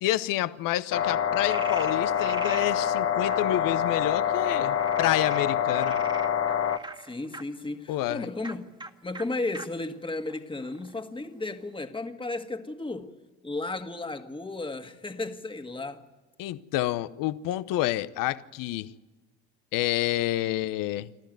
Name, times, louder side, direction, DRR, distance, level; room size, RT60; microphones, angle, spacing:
voice 1, 0.0-6.0 7.9-8.3 16.4-18.9 19.7-21.1, left 15 dB, 65° left, 0.9 m, -28 dB
sound 1, 0.9-6.8, left 8 dB, 40° left, 1.5 m, -26 dB
Frog, 1.5-2.7 3.3-3.4 4.7-7.4 8.4-8.5 8.8-8.9 9.1-9.2 9.5-9.7 10.3-11.0, right 2 dB, 10° right, 2.0 m, -40 dB
voice 2, 7.0-8.7 9.0-13.2 13.4-16.1, left 2 dB, 15° left, 1.9 m, -34 dB
27.0 x 13.5 x 9.3 m
hypercardioid pair, 65°, 36 cm